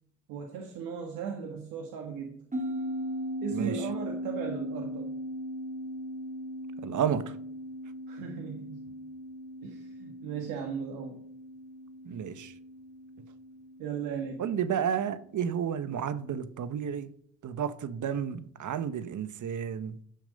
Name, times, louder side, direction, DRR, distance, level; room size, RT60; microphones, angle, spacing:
voice 1, 0.3-2.4 3.4-5.1 8.1-8.9 9.6-11.2 13.8-14.4, right 7 dB, 85° right, 1.6 m, -37 dB
sound 1, 2.5-15.3, equal, 25° right, 2.7 m, -39 dB
voice 2, 6.8-7.3 12.1-12.5 14.4-17.1 17.4-20.0, right 8 dB, 60° right, 1.1 m, -31 dB
15.5 x 6.3 x 5.3 m
hypercardioid pair, 50°, 33 cm